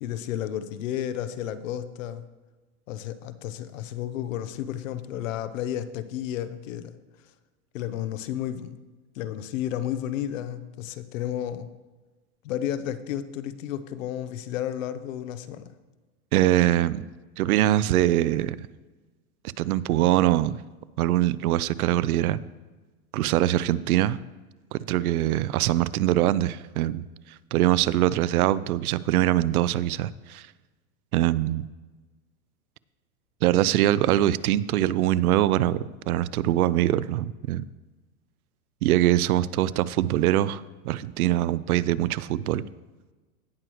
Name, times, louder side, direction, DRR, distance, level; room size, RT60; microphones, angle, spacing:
voice 1, 0.0-2.2 2.9-6.9 7.7-8.7 9.1-11.7 12.4-15.6, left 11 dB, 65° left, 13 dB, 0.8 m, -32 dB
voice 2, 16.3-17.1 17.4-18.6 19.6-20.6 21.0-22.4 23.1-24.2 24.7-27.0 27.5-30.4 31.1-31.6 33.4-37.6 38.8-42.6, right 14 dB, 90° right, 19 dB, 0.5 m, -23 dB
17.0 x 6.3 x 3.1 m, 1.2 s
supercardioid pair, 150°, 43 cm